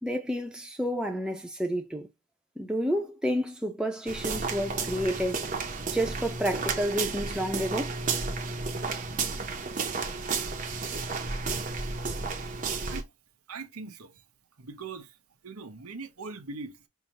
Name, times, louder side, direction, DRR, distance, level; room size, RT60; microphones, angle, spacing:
voice 1, 0.0-2.1 2.6-5.4 5.9-8.0, equal, 5° right, 0.8 m, -30 dB
sound 1, 4.1-13.0, right 4 dB, 35° right, 0.8 m, -32 dB
voice 2, 13.5-14.2 14.6-15.2 15.4-16.8, right 4 dB, 90° right, 0.9 m, -41 dB
5.6 x 2.8 x 2.9 m
head